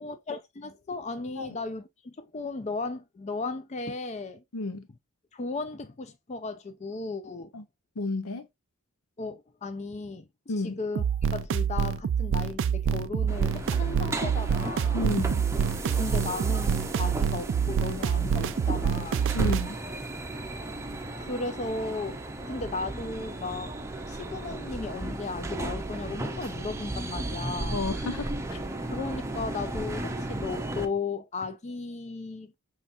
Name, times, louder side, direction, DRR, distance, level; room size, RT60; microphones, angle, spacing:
voice 1, 0.0-4.4 5.3-7.5 9.2-10.3 10.6-15.0 16.0-19.3 21.2-23.8 24.1-27.9 28.9-32.6, left 3 dB, 30° left, 0.4 m, -35 dB
voice 2, 4.5-4.9 7.5-7.6 8.0-8.5 10.5-10.8 14.9-15.5 19.3-19.8 27.7-28.6, left 2 dB, 75° left, 0.7 m, -31 dB
sound 1, 11.0-19.7, right 7 dB, 55° right, 0.3 m, -27 dB
sound 2, 13.3-30.9, right 2 dB, 15° right, 0.6 m, -35 dB
5.6 x 3.4 x 2.5 m
head